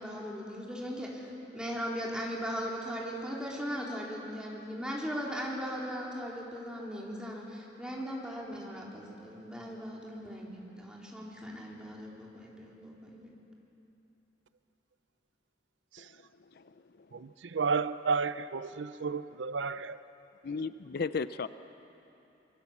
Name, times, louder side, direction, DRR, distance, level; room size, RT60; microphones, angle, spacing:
voice 1, 0.0-13.3, equal, 5° right, -3 dB, 3.6 m, -38 dB
voice 2, 16.0-17.2 18.3-18.5 20.4-21.5, left 4 dB, 55° left, 13 dB, 0.5 m, -37 dB
voice 3, 17.1-20.0, right 5 dB, 80° right, 14 dB, 0.5 m, -32 dB
25.5 x 23.0 x 7.3 m, 3.0 s
head